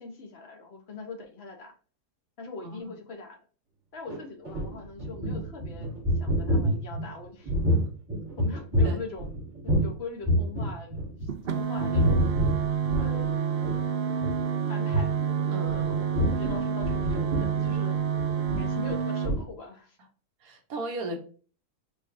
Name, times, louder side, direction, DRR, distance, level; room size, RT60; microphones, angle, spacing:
voice 1, 0.0-1.7 2.4-3.4 3.9-5.9 6.2-7.5 8.4-9.2 9.6-11.3 11.6-12.5 12.9-13.8 14.7-18.0 18.5-20.0, left 4 dB, 45° left, 1.1 m, -42 dB
voice 2, 2.6-3.0 8.8-9.0 15.5-16.0 20.4-21.2, right 2 dB, 65° right, 1.5 m, -36 dB
sound 1, 4.1-10.0 10.2-11.5 11.8-13.3 13.6-13.8 14.1-14.3 14.9-15.1 15.7-19.0 19.3-19.4, equal, 15° right, 1.8 m, -27 dB
sound 2, 11.3-19.3, right 7 dB, 90° right, 0.5 m, -28 dB
sound 3, 13.0-18.4, left 1 dB, 30° left, 0.3 m, -46 dB
5.9 x 3.0 x 2.6 m
omnidirectional pair, 1.7 m